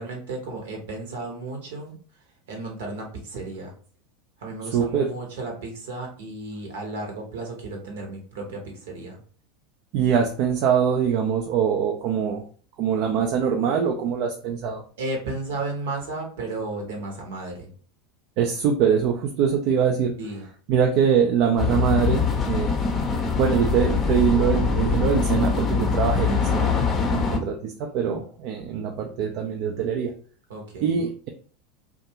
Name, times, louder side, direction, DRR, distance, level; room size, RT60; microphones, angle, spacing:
voice 1, 0.0-2.0 2.5-3.7 4.4-9.2 15.0-17.7 20.2-20.4 27.2-27.5 30.5-31.0, right 2 dB, 70° right, 1 dB, 0.9 m, -34 dB
voice 2, 4.7-5.2 9.9-12.5 12.8-14.8 18.4-20.2 20.7-22.8 23.4-26.7 27.1-30.2 30.8-31.3, right 7 dB, 55° right, 2 dB, 0.4 m, -23 dB
sound 1, 21.6-27.4, left 5 dB, 35° left, 0.6 m, -23 dB
2.6 x 2.3 x 2.7 m, 0.44 s
hypercardioid pair, 85°, 0 cm